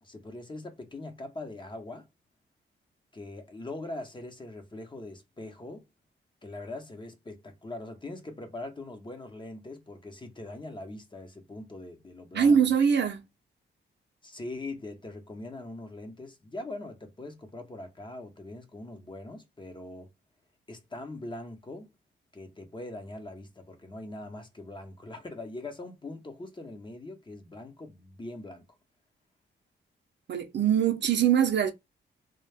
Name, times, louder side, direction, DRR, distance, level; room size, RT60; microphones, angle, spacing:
voice 1, 0.0-2.1 3.1-5.9 6.4-12.6 14.2-20.1 20.7-21.9 22.3-28.6, left 2 dB, 25° left, 0.8 m, -42 dB
voice 2, 12.3-13.2 30.3-31.7, right 7 dB, 60° right, 0.6 m, -23 dB
2.4 x 2.1 x 3.3 m
cardioid pair, 75°, 20 cm